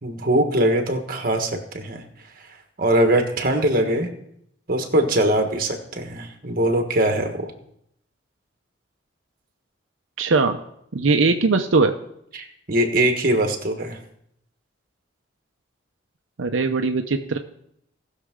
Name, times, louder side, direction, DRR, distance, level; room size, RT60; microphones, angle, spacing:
voice 1, 0.0-2.0 2.8-4.1 4.7-7.5 12.3-14.0, right 1 dB, 45° right, 4 dB, 1.5 m, -22 dB
voice 2, 10.2-10.6 10.9-11.9 16.4-17.4, right 3 dB, 90° right, 5 dB, 0.7 m, -20 dB
18.5 x 6.6 x 3.7 m, 0.73 s
head